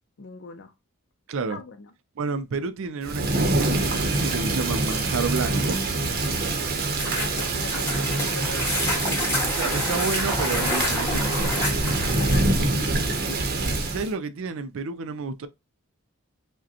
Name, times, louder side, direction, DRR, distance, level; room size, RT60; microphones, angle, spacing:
voice 1, 0.2-0.7 1.5-1.9 7.1-8.9 12.2-13.4, left 4 dB, 55° left, 0.5 m, -40 dB
voice 2, 1.3-1.6 2.2-5.8 9.4-11.6 13.8-15.5, right 4 dB, 65° right, 0.4 m, -30 dB
Thunder / Rain, 3.0-14.1, right 2 dB, 45° right, 0.8 m, -25 dB
sound 1, 3.8-8.6, equal, 15° right, 1.1 m, -42 dB
sound 2, 6.9-12.5, left 1 dB, 10° left, 1.5 m, -29 dB
4.9 x 2.2 x 2.8 m
head